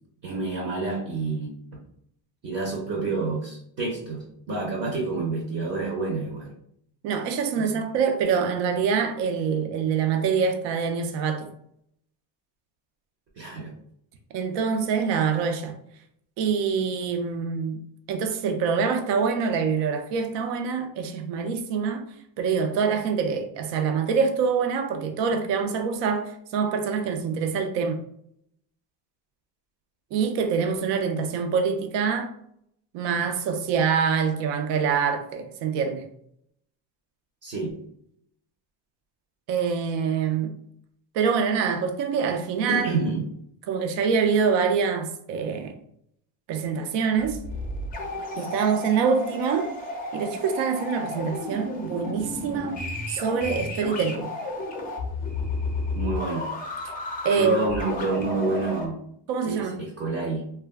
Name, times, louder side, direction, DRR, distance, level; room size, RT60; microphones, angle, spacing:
voice 1, 0.2-1.5 2.4-6.5 7.5-7.8 13.3-13.8 37.4-37.8 42.7-43.3 55.9-56.5 57.3-59.0 59.4-60.5, right 3 dB, 35° right, 0.6 m, -29 dB
voice 2, 7.0-11.5 14.3-15.7 16.4-17.8 18.1-22.1 22.4-28.0 30.1-32.3 32.9-36.1 39.5-40.5 41.1-42.9 43.7-45.8 46.5-47.4 48.3-49.7 50.1-52.8 53.1-54.3 57.2-57.6 59.3-59.8, right 6 dB, 75° right, 0.6 m, -25 dB
sound 1, 47.2-58.9, left 2 dB, 20° left, 0.4 m, -32 dB
2.3 x 2.2 x 3.4 m
cardioid pair, 150°, 44 cm